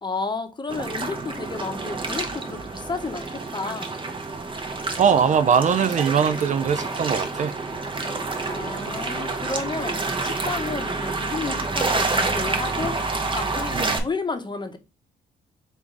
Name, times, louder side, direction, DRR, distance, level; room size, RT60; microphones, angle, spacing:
voice 1, 0.0-3.9 8.5-13.0 13.3-14.8, left 4 dB, 25° left, 0.9 m, -31 dB
sound 1, 0.7-14.0, right 3 dB, 30° right, 1.0 m, -28 dB
voice 2, 5.0-7.5 13.7-14.0, right 7 dB, 45° right, 0.4 m, -21 dB
3.6 x 2.6 x 4.6 m
supercardioid pair, 60°, 17 cm